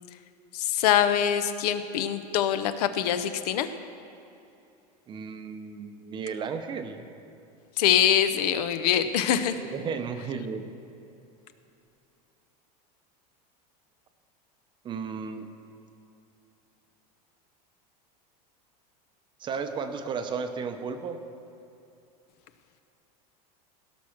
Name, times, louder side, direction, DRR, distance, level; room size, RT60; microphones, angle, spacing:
voice 1, 0.5-3.7 7.8-9.6, left 10 dB, 80° left, 11 dB, 0.8 m, -24 dB
voice 2, 5.1-7.1 9.7-10.7 14.8-15.5 19.4-21.2, right 5 dB, 25° right, 8 dB, 0.7 m, -34 dB
17.0 x 6.1 x 5.9 m, 2.8 s
supercardioid pair, 155°, 20 cm